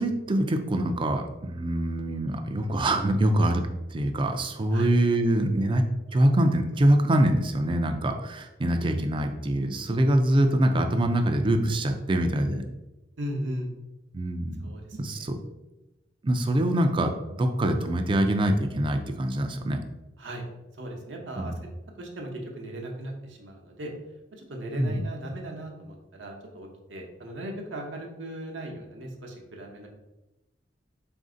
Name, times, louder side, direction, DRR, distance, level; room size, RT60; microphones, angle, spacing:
voice 1, 0.0-3.6 3.9-5.8 6.1-12.6 14.1-15.4 16.2-17.1 17.4-19.8 21.4-21.6 24.8-25.0, right 1 dB, 25° right, 5 dB, 0.4 m, -24 dB
voice 2, 13.2-13.7 14.6-15.3 20.2-20.5 20.8-21.5 22.0-23.9 24.5-29.9, right 1 dB, 75° right, 1 dB, 0.8 m, -37 dB
4.0 x 2.6 x 3.7 m, 0.99 s
head